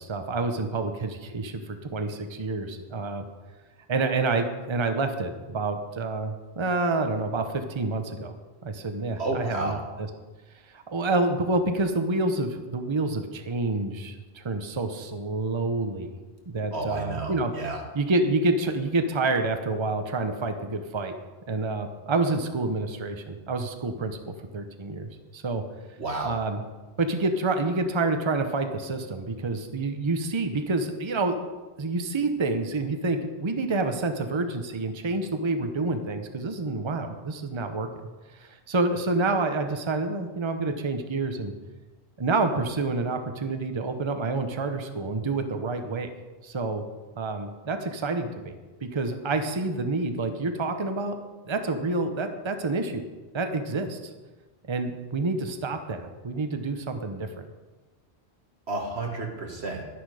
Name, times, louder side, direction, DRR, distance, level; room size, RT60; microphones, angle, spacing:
voice 1, 0.0-3.2 3.9-8.3 8.6-9.8 10.7-16.2 16.5-17.5 17.9-21.1 21.5-24.2 24.5-25.6 26.2-26.6 27.0-31.4 31.8-37.9 38.3-41.5 42.2-46.1 46.4-46.8 47.2-48.6 48.8-51.1 51.5-53.0 53.3-54.1 54.7-57.5, right 3 dB, 30° right, 7 dB, 0.9 m, -28 dB
voice 2, 9.2-9.8 16.7-17.8 26.0-26.4 58.7-59.9, right 2 dB, 85° right, 2 dB, 2.0 m, -31 dB
11.5 x 10.5 x 4.9 m, 1.2 s
omnidirectional pair, 1.1 m